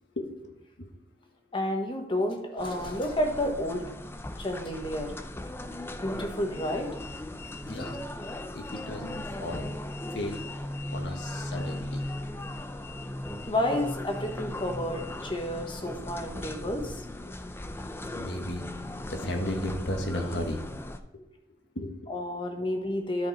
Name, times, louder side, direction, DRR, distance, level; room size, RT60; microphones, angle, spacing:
voice 1, 0.1-0.9 7.6-8.0 8.5-9.7 10.1-10.5 10.9-12.1 17.3-17.4 17.6-17.8 18.1-18.6 19.1-20.6 21.1-21.2 21.7-22.1, left 1 dB, 90° left, 3 dB, 1.5 m, -35 dB
voice 2, 1.5-3.8 4.4-5.1 6.0-6.9 13.5-17.0 22.1-23.3, left 1 dB, 30° left, 3 dB, 1.3 m, -30 dB
sound 1, 2.6-21.0, left 1 dB, 15° left, 0.5 m, -38 dB
13.0 x 5.2 x 4.1 m, 0.86 s
head